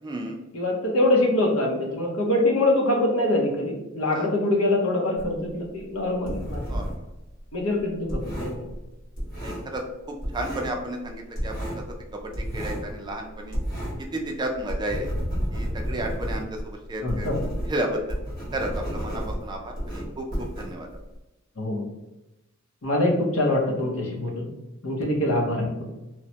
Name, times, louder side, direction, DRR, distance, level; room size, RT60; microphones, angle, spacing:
voice 1, 0.0-0.4 4.1-4.3 6.6-6.9 9.4-9.8 10.1-11.7 12.1-13.6 14.0-15.1 15.5-17.3 17.7-18.2 18.5-20.9, right 1 dB, 20° right, 2 dB, 0.4 m, -32 dB
voice 2, 0.5-6.8 7.5-8.6 17.0-17.4 21.6-21.9 22.8-24.5 24.8-25.9, left 1 dB, 85° left, 0 dB, 0.7 m, -24 dB
sound 1, 5.2-7.1 7.4-9.9 10.2-10.8 11.0-14.1 14.4-21.2, equal, 45° left, 1.4 m, -31 dB
3.0 x 2.1 x 2.8 m, 0.99 s
head